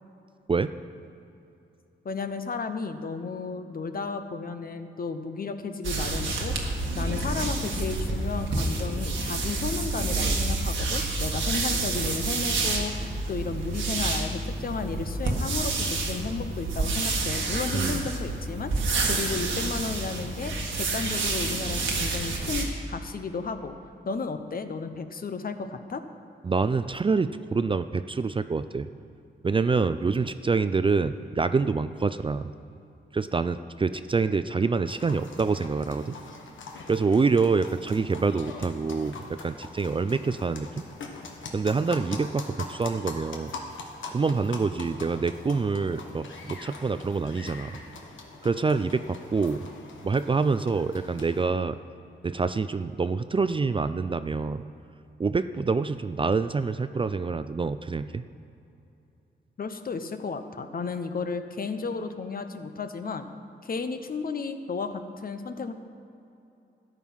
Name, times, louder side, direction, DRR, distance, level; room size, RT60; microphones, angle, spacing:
voice 1, 2.0-18.7 19.1-23.8 24.0-26.0 59.6-63.3 63.6-65.7, left 4 dB, 50° left, 9 dB, 0.8 m, -33 dB
sound 1, 5.8-22.7, right 3 dB, 80° right, 1.6 m, -28 dB
voice 2, 26.4-28.9 29.4-32.5 33.1-36.2 36.9-40.8 41.5-43.5 44.1-47.8 48.4-49.6 50.0-51.8 52.2-54.6 55.2-58.2, right 4 dB, 25° right, 12 dB, 0.4 m, -26 dB
sound 2, 34.9-51.4, left 3 dB, 85° left, 1.3 m, -43 dB
13.0 x 9.2 x 5.6 m, 2.8 s
cardioid pair, 85°, 19 cm